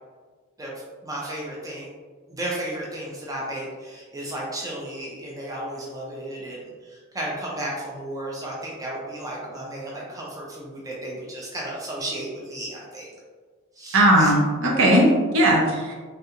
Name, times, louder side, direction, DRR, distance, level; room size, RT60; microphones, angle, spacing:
voice 1, 1.0-1.9 2.3-13.1 13.8-14.3, right 1 dB, 15° right, -4 dB, 0.5 m, -34 dB
voice 2, 13.9-15.9, right 1 dB, 65° right, -2 dB, 0.7 m, -18 dB
3.3 x 2.4 x 2.8 m, 1.5 s
head